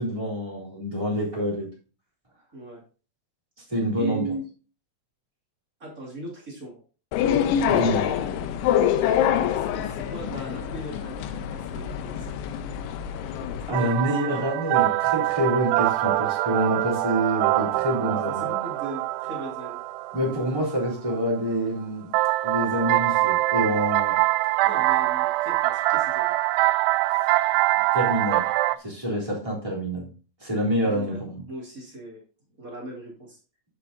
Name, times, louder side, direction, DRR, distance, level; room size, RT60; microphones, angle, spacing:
voice 1, 0.0-1.7 3.7-4.3 7.7-8.1 13.7-18.5 20.1-22.1 22.4-24.2 27.9-28.5 28.8-30.1 30.4-31.4, equal, 10° right, -3 dB, 2.5 m, -27 dB
voice 2, 4.0-4.5 5.8-6.8 9.5-12.3 13.7-14.1 18.0-19.8 24.6-26.3 30.8-31.2 31.5-32.2 32.6-33.4, right 2 dB, 30° right, -3 dB, 1.6 m, -38 dB
sound 1, 7.1-13.7, left 9 dB, 80° left, 3.0 m, -25 dB
sound 2, 13.7-21.2 22.1-28.8, right 18 dB, 85° right, 2.8 m, -24 dB
13.5 x 6.7 x 2.7 m, 0.36 s
omnidirectional pair, 5.6 m